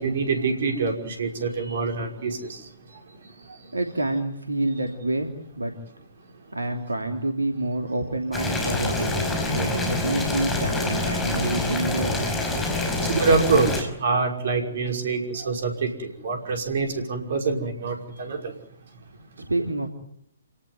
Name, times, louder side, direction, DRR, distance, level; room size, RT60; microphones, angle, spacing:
voice 1, 0.0-3.0 3.5-3.6 12.6-18.5, right 4 dB, 55° right, 4 dB, 5.6 m, -26 dB
voice 2, 3.7-5.7 6.5-9.1 9.5-12.2 19.4-19.9, right 1 dB, 80° right, 5 dB, 3.1 m, -28 dB
Boiling, 8.3-13.8, left 2 dB, 10° left, 5.4 m, -26 dB
29.0 x 18.5 x 9.6 m, 0.73 s
figure-of-eight pair, 125°, 0 cm